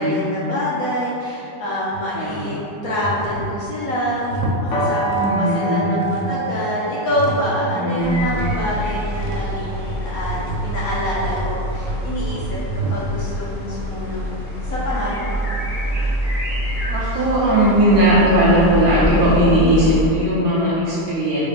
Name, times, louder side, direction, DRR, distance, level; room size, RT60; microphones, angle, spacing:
voice 1, 0.0-15.5, equal, 65° left, -8 dB, 0.9 m, -26 dB
sound 1, 1.9-2.5 2.9-5.5 5.8-7.5 7.8-13.4, right 2 dB, 90° right, 1.3 m, -29 dB
voice 2, 2.1-2.5 5.2-5.9 7.7-8.2 16.9-21.5, right 1 dB, 70° right, -7 dB, 0.9 m, -18 dB
sound 2, 4.7-10.6, right 2 dB, 85° left, 1.6 m, -28 dB
Rain in the Forest, 8.0-20.1, equal, 45° left, 0.8 m, -26 dB
3.8 x 2.4 x 3.3 m, 2.7 s
omnidirectional pair, 2.0 m